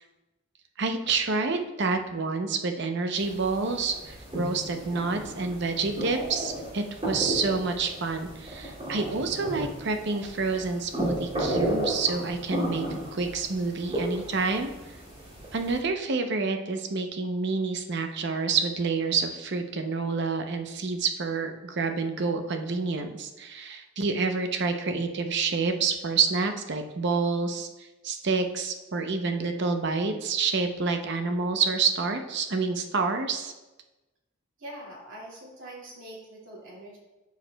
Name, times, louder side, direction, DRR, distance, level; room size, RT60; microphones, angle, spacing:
voice 1, 0.8-12.8 13.1-14.7 15.5-27.7 28.0-33.5, right 4 dB, 60° right, 6 dB, 0.6 m, -28 dB
sound 1, 3.2-15.8, right 1 dB, 30° right, 2.4 m, -34 dB
voice 2, 34.6-37.0, right 1 dB, 75° right, -4 dB, 2.3 m, -43 dB
12.5 x 4.8 x 2.2 m, 1.1 s
head